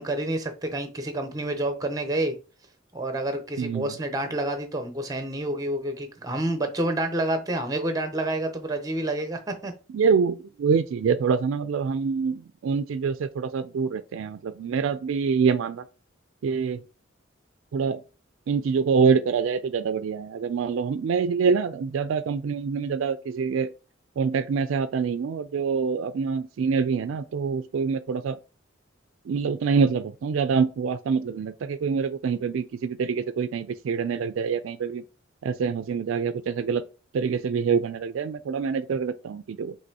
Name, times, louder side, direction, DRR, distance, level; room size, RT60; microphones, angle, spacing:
voice 1, 0.0-2.4 2.9-9.7, right 1 dB, 20° right, 0.7 m, -28 dB
voice 2, 3.6-3.9 9.9-15.8 16.4-16.8 17.7-18.0 18.5-23.7 24.2-28.4 29.3-35.0 35.4-36.8 37.1-39.8, right 5 dB, 75° right, 0.3 m, -25 dB
5.2 x 3.2 x 2.8 m
head